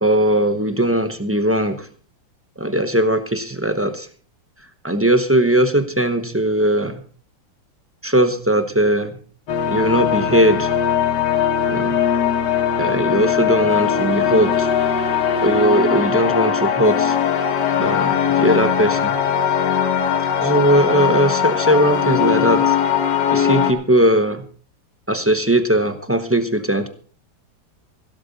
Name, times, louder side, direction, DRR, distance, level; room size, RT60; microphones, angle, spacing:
voice 1, 0.0-1.9 2.6-4.1 4.8-7.0 8.0-9.1 9.7-10.7 11.7-12.0 12.8-14.7 15.4-17.2 17.8-19.1 20.4-22.7 23.3-24.4 25.1-26.9, right 1 dB, 15° right, 9 dB, 0.4 m, -19 dB
sound 1, 9.5-23.7, left 8 dB, 60° left, 1.8 m, -20 dB
16.0 x 13.5 x 4.1 m, 0.41 s
omnidirectional pair, 2.1 m